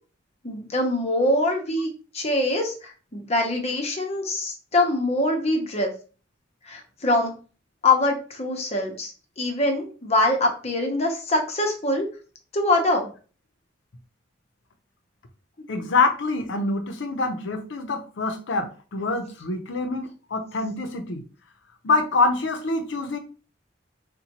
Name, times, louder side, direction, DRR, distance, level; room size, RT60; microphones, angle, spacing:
voice 1, 0.4-1.9 2.1-5.9 6.7-7.3 7.8-9.1 9.4-12.1 12.5-13.1, left 2 dB, 35° left, 0.8 m, -23 dB
voice 2, 15.7-21.2 21.8-23.2, left 3 dB, 80° left, 0.6 m, -25 dB
4.1 x 2.2 x 2.8 m
head